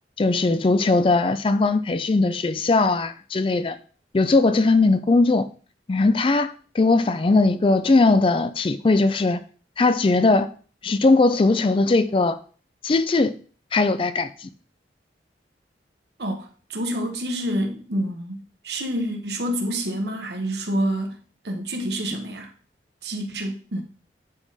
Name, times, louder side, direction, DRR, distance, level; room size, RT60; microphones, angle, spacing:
voice 1, 0.2-3.8 4.1-5.5 5.9-9.4 9.8-10.5 10.8-12.4 12.8-13.3 13.7-14.5, left 3 dB, 30° left, 0.4 m, -19 dB
voice 2, 16.2-21.2 21.4-22.5 23.0-23.8, right 1 dB, 70° right, 1.2 m, -28 dB
9.1 x 3.6 x 4.1 m
head